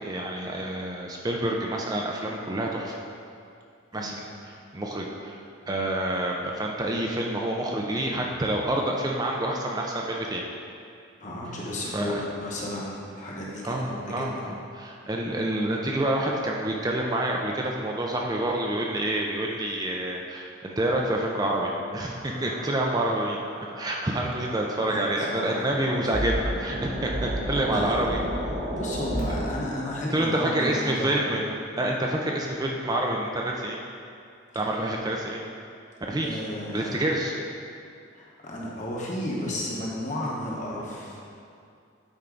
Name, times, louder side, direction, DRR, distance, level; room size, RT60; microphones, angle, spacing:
voice 1, 0.0-3.0 3.9-5.4 5.7-10.5 11.8-12.2 13.6-23.4 23.8-28.2 30.1-31.4 31.8-33.8 34.5-35.4 36.1-36.4 36.7-37.4, right 1 dB, 20° right, -1 dB, 0.5 m, -28 dB
voice 2, 11.2-14.5 24.8-25.6 27.6-28.0 28.7-31.3 34.5-34.6 36.2-37.0 38.1-41.3, left 1 dB, 35° left, -4 dB, 1.2 m, -33 dB
sound 1, 22.3-29.5, right 1 dB, 50° right, 1.4 m, -33 dB
8.9 x 4.5 x 3.9 m, 2.4 s
head